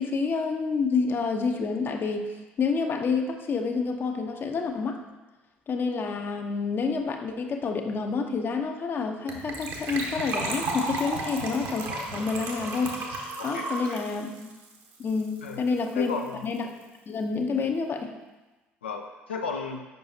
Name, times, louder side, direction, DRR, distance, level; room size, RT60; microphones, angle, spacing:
voice 1, 0.0-5.0 5.7-12.9 13.4-14.5 15.0-16.2 16.4-16.7 17.1-18.1, left 4 dB, 35° left, 4 dB, 0.6 m, -28 dB
Gurgling / Trickle dribble / Fill (with liquid), 9.3-15.5 15.8-15.9 16.0-16.3 16.6-16.7, right 2 dB, 55° right, 1.0 m, -33 dB
voice 2, 13.4-14.0 15.4-15.7 15.9-16.5 18.8-19.9, left 5 dB, 75° left, 3 dB, 0.4 m, -34 dB
6.7 x 5.5 x 2.7 m, 1.2 s
figure-of-eight pair, 55°, 6 cm